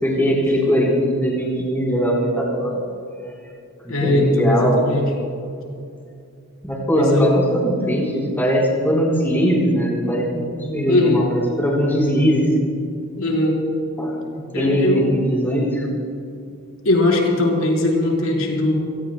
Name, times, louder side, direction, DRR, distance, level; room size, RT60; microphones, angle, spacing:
voice 1, 0.0-2.8 3.8-4.8 6.6-12.4 14.0-15.9, equal, 10° left, -3 dB, 3.9 m, -20 dB
voice 2, 3.9-5.1 6.9-7.4 10.9-11.2 13.2-13.6 14.5-15.1 16.8-18.7, left 2 dB, 85° left, -2 dB, 4.4 m, -19 dB
30.0 x 18.0 x 2.3 m, 2.5 s
head